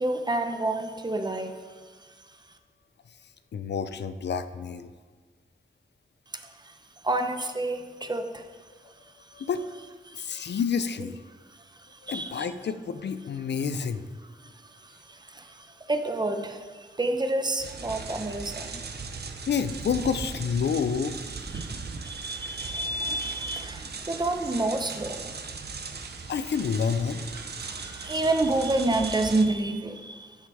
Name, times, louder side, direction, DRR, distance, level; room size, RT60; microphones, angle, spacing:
voice 1, 0.0-1.5 6.3-6.7 7.0-8.4 9.4-9.5 10.1-10.6 11.8-12.5 14.4-18.8 21.5-21.8 22.0-25.8 27.6-30.4, right 2 dB, 20° right, 6 dB, 0.8 m, -29 dB
voice 2, 3.5-4.9 9.3-9.9 10.1-11.2 12.0-14.1 19.5-21.1 26.3-27.2, left 6 dB, 70° left, 12 dB, 0.5 m, -29 dB
sound 1, 17.6-29.4, right 4 dB, 60° right, 0.8 m, -38 dB
9.4 x 5.6 x 4.9 m, 1.4 s
wide cardioid pair, 85°, 19 cm